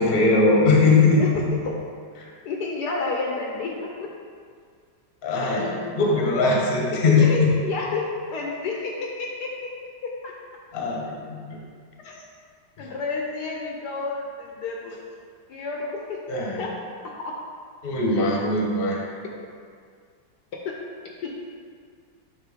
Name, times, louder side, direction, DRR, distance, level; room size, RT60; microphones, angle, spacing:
voice 1, 0.0-1.5 5.2-7.5 10.7-11.6 12.8-12.9 16.3-16.6 17.8-19.0, left 3 dB, 40° left, -2 dB, 0.9 m, -20 dB
voice 2, 2.5-3.9 5.4-5.6 6.9-8.9 9.2-9.5 10.2-10.3 12.0-12.2 12.8-15.0 15.5-16.2 16.6-16.7 17.2-17.3 20.6-20.7 21.2-21.3, left 4 dB, 70° left, -1 dB, 1.1 m, -30 dB
7.4 x 3.0 x 5.0 m, 2.1 s
omnidirectional pair, 2.0 m